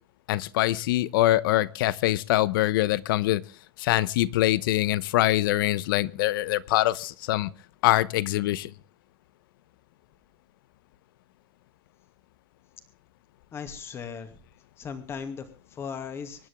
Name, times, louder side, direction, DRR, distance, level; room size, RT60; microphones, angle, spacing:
voice 1, 0.3-3.4 3.8-7.5 7.8-8.7, left 15 dB, 65° left, 20 dB, 0.9 m, -24 dB
voice 2, 13.5-14.4 14.8-16.5, left 6 dB, 20° left, 9 dB, 2.3 m, -37 dB
25.0 x 11.0 x 3.6 m, 0.38 s
supercardioid pair, 160°, 12 cm